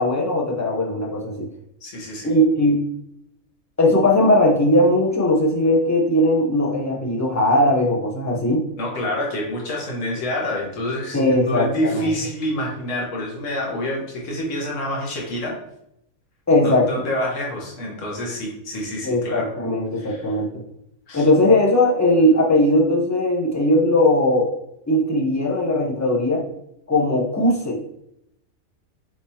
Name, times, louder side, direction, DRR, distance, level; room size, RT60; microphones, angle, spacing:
voice 1, 0.0-1.5 2.2-2.8 3.8-8.7 11.1-12.1 16.5-17.1 19.0-20.6 21.1-24.5 24.9-26.4 26.9-27.8, left 1 dB, 20° left, -3 dB, 0.5 m, -19 dB
voice 2, 1.8-2.3 8.8-15.6 16.6-19.5 20.0-20.2 21.1-21.3, left 1 dB, 65° left, -2 dB, 1.5 m, -27 dB
4.8 x 3.5 x 2.8 m, 0.79 s
omnidirectional pair, 1.5 m